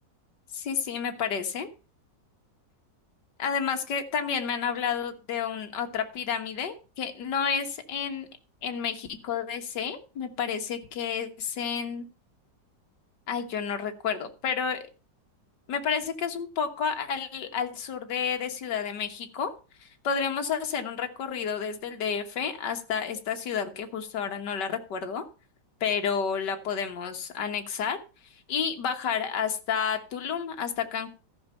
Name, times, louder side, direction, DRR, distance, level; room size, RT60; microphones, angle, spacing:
voice 1, 0.5-1.7 3.4-8.3 8.6-12.1 13.3-14.8 15.7-19.5 19.8-25.2 25.8-28.0 28.5-31.1, left 7 dB, 70° left, 6 dB, 2.0 m, -30 dB
13.5 x 6.2 x 5.5 m, 0.33 s
omnidirectional pair, 1.9 m